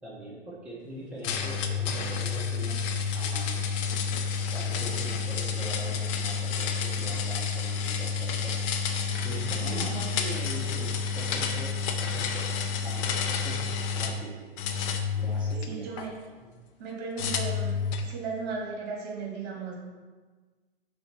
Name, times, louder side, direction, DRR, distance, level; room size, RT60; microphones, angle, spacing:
voice 1, 0.0-2.8 3.1-3.6 4.5-8.6 9.2-12.5 12.8-13.7 13.9-14.4 15.2-15.9 16.4-16.5, right 1 dB, 5° right, -8 dB, 1.2 m, -42 dB
sound 1, 1.2-14.2 14.6-16.1 17.2-18.1, left 6 dB, 30° left, 0.6 m, -30 dB
voice 2, 9.6-9.9 15.7-16.1 16.8-17.7 18.0-19.7, right 4 dB, 40° right, -1 dB, 2.0 m, -36 dB
5.6 x 4.0 x 5.9 m, 1.4 s
figure-of-eight pair, 110°, 32 cm